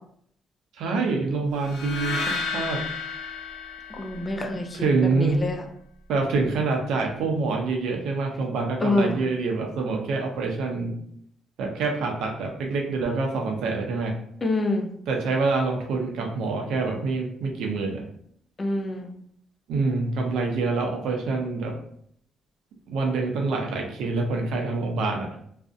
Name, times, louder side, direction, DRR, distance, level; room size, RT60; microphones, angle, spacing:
voice 1, 0.8-2.8 4.7-5.4 6.1-11.0 11.6-14.2 15.1-18.0 19.7-21.8 22.9-25.3, right 3 dB, 85° right, 2 dB, 0.5 m, -26 dB
sound 1, 1.6-4.8, left 4 dB, 85° left, 0.7 m, -32 dB
voice 2, 3.9-4.8 5.1-5.6 8.8-9.2 14.4-14.9 18.6-19.1, left 2 dB, 30° left, 4 dB, 0.4 m, -26 dB
2.4 x 2.0 x 2.5 m, 0.66 s
cardioid pair, 90°, 0 cm